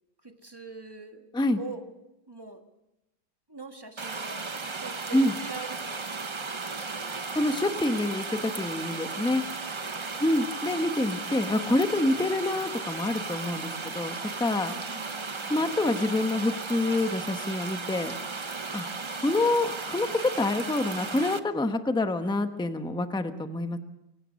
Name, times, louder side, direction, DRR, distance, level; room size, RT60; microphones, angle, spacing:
voice 1, 0.2-1.9 2.3-2.7 3.5-4.5 4.8-6.0 6.4-7.5 9.2-10.2 14.7-15.7, right 4 dB, 15° right, 5 dB, 1.5 m, -44 dB
sound 1, 4.0-21.4, right 4 dB, 45° right, 0.3 m, -35 dB
voice 2, 7.3-9.4 10.2-14.7 15.5-18.1 18.7-18.9 19.2-23.8, left 2 dB, 5° left, 7 dB, 0.8 m, -27 dB
23.5 x 17.5 x 6.4 m, 0.92 s
omnidirectional pair, 1.9 m